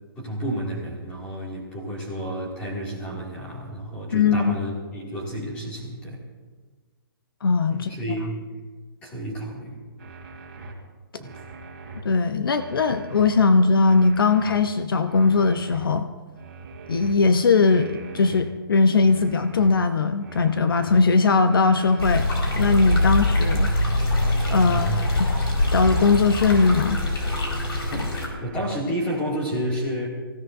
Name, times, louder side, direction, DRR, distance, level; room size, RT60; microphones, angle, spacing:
voice 1, 0.2-6.2 7.7-8.3 9.0-9.8 11.2-11.4 24.6-25.0 28.4-30.1, equal, 10° left, -4 dB, 2.3 m, -30 dB
voice 2, 4.1-4.5 7.4-7.9 12.0-16.1 16.9-22.3 22.5-23.7 24.5-25.3 25.7-27.0, left 4 dB, 65° left, 10 dB, 0.8 m, -20 dB
sound 1, 10.0-10.7 11.2-12.0 12.5-13.3 13.8-14.6 15.1-15.8 16.3-17.1 17.6-18.4 18.9-19.7 20.2-21.0 21.5-22.3 22.8-23.5 24.0-24.8 25.3-26.1 26.6-27.4 27.9-28.7, right 3 dB, 35° right, 3.0 m, -42 dB
sound 2, 22.0-28.3, left 1 dB, 85° left, 4.7 m, -23 dB
25.0 x 16.0 x 2.6 m, 1.4 s
hypercardioid pair, 175°, 12 cm